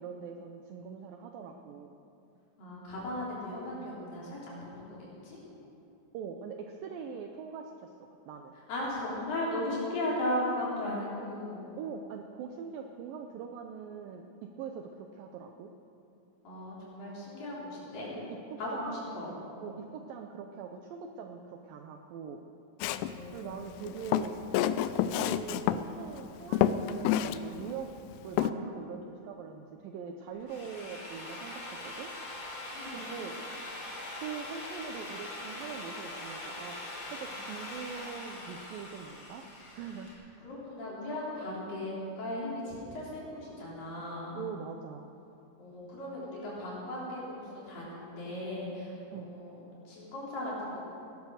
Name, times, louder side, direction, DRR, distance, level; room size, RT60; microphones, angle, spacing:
voice 1, 0.0-1.9 6.1-7.9 8.3-8.5 11.8-14.2 14.6-15.7 18.1-22.4 23.3-24.4 25.1-27.9 28.2-32.1 32.9-33.4 34.2-40.1 44.4-45.1 49.1-49.3, right 6 dB, 80° right, 4 dB, 2.1 m, -42 dB
voice 2, 2.6-5.4 8.7-11.7 16.4-18.1 18.6-19.3 23.0-23.8 32.7-33.0 40.4-44.4 45.6-50.8, left 1 dB, 55° left, -6 dB, 5.4 m, -37 dB
Walk footsteps, 22.8-23.1 23.9-25.8 26.2-26.3 26.5-27.4 27.7-27.8 28.4-28.5, left 11 dB, 90° left, 2.7 m, -28 dB
Drill, 30.3-40.1, left 1 dB, 40° left, 2.9 m, -42 dB
17.5 x 11.5 x 6.5 m, 2.8 s
omnidirectional pair, 4.8 m